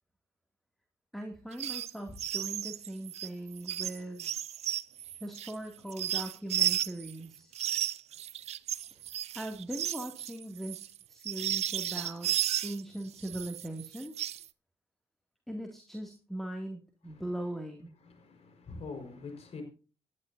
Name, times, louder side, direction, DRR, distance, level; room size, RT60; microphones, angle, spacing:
voice 1, 1.1-4.3 5.2-7.5 8.9-9.0 9.3-12.3 12.6-14.3 15.5-17.9, right 1 dB, ahead, 2.5 m, -40 dB
sound 1, 1.5-1.9 2.2-7.1 7.5-12.8 13.2-14.5, right 11 dB, 80° right, 0.5 m, -34 dB
voice 2, 17.0-17.5 18.0-19.6, left 4 dB, 70° left, 4.9 m, -45 dB
18.5 x 11.0 x 2.7 m
cardioid pair, 65°, 11 cm